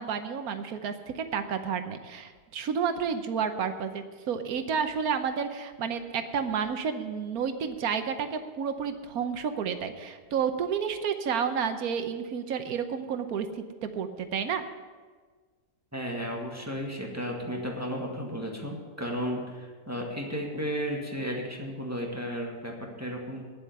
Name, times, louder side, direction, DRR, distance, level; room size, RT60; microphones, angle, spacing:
voice 1, 0.0-14.7, right 7 dB, 65° right, 9 dB, 1.3 m, -31 dB
voice 2, 15.9-23.4, equal, 10° right, -1 dB, 1.7 m, -34 dB
10.0 x 7.6 x 9.3 m, 1.5 s
omnidirectional pair, 1.7 m